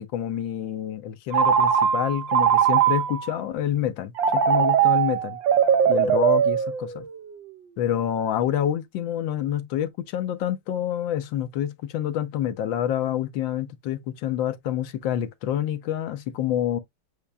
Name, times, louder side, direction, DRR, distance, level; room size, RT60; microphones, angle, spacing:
voice 1, 0.0-5.4 5.9-7.1 7.8-16.8, left 10 dB, 70° left, 1.3 m, -27 dB
Telephone, 1.3-3.3 4.2-7.2, right 8 dB, 70° right, 1.4 m, -20 dB
8.2 x 2.9 x 2.2 m
omnidirectional pair, 2.3 m